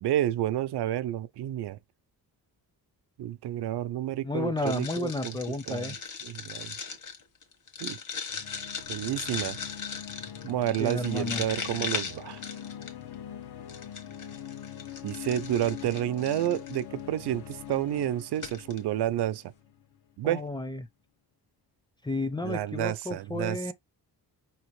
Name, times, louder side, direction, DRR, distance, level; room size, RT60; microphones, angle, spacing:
voice 1, 0.0-1.8 3.2-5.3 5.7-5.9 6.2-6.7 7.8-8.0 8.9-9.6 10.4-12.4 15.0-19.4 20.2-20.4 22.4-23.7, right 12 dB, 85° right, 0.5 m, -30 dB
voice 2, 4.2-6.0 10.8-11.4 20.2-20.9 22.0-23.7, left 2 dB, 10° left, 0.5 m, -32 dB
sound 1, 4.6-13.1 13.7-16.8 17.5-17.7 18.0-18.1 18.4-18.8, left 6 dB, 50° left, 1.3 m, -38 dB
sound 2, 8.3-19.8, left 10 dB, 75° left, 0.9 m, -43 dB
5.5 x 3.0 x 3.0 m
wide cardioid pair, 135°, 39 cm